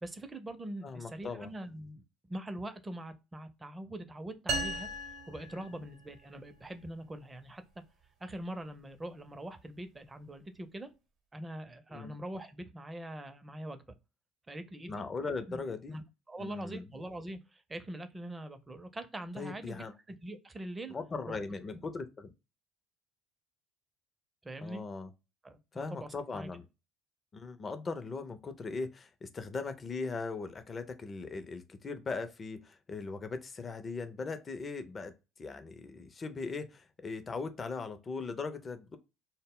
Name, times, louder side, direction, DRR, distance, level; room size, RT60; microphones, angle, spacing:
voice 1, 0.0-4.9 5.3-7.6 8.2-10.9 11.3-13.8 14.5-15.0 15.5-15.6 15.9-20.9 21.3-21.4 24.4-24.8 25.4-26.5, right 1 dB, 20° right, 0.5 m, -43 dB
voice 2, 0.8-1.5 11.9-12.1 14.9-16.0 16.4-16.9 19.4-19.9 20.9-22.3 24.6-25.1 25.7-26.7 27.3-35.1 35.4-39.0, left 4 dB, 35° left, 0.5 m, -39 dB
sound 1, 4.5-6.3, right 2 dB, 55° right, 0.7 m, -37 dB
2.1 x 2.0 x 3.5 m
hypercardioid pair, 65°, 0 cm